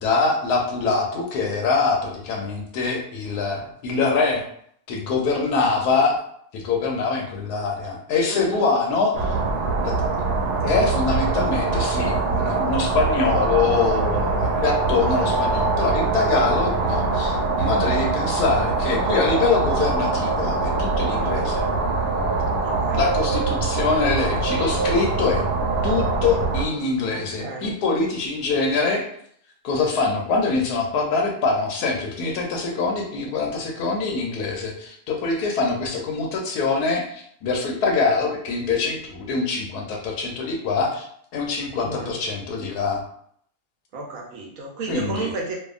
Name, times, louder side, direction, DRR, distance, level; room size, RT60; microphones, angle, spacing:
voice 1, 0.0-4.4 4.9-6.2 6.5-9.4 9.8-9.9 10.6-21.7 22.9-25.4 25.8-29.1 29.6-41.1 41.3-43.0 44.9-45.3, left 4 dB, 85° left, 0 dB, 1.2 m, -24 dB
voice 2, 8.3-8.7 22.6-23.0 27.1-27.7 41.8-42.1 43.9-45.5, right 3 dB, 65° right, -1 dB, 1.0 m, -33 dB
sound 1, 9.1-26.7, right 3 dB, 85° right, 1.2 m, -23 dB
2.7 x 2.4 x 2.4 m, 0.64 s
omnidirectional pair, 1.7 m